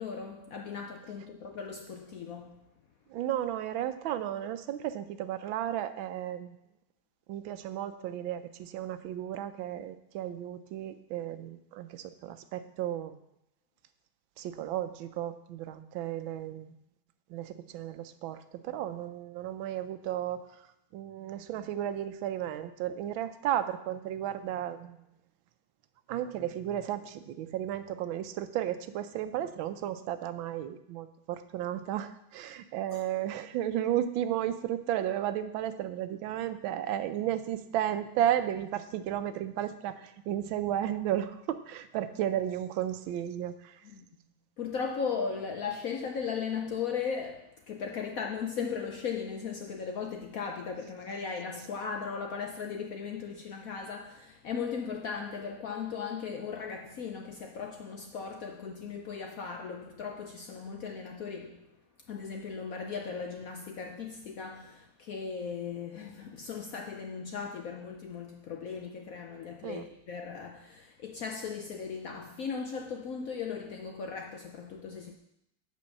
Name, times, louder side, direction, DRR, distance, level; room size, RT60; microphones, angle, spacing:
voice 1, 0.0-2.6 32.9-33.0 43.8-44.1 44.6-61.7 62.1-75.1, left 6 dB, 65° left, 0.8 m, -37 dB
voice 2, 3.1-6.6 7.3-13.2 14.4-16.7 17.3-20.6 20.9-25.0 26.1-43.8 69.6-69.9, right 11 dB, 85° right, 1.4 m, -34 dB
8.4 x 5.2 x 6.4 m
omnidirectional pair, 2.1 m